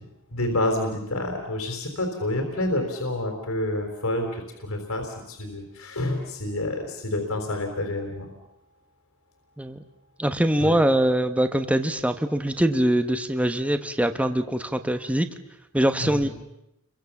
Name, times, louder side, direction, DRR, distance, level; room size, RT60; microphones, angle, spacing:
voice 1, 0.3-8.3 10.6-10.8 16.0-16.3, left 1 dB, 70° left, 3 dB, 3.8 m, -28 dB
voice 2, 10.2-15.3 15.7-16.3, right 1 dB, 5° right, 8 dB, 1.0 m, -23 dB
30.0 x 23.5 x 7.2 m, 0.86 s
head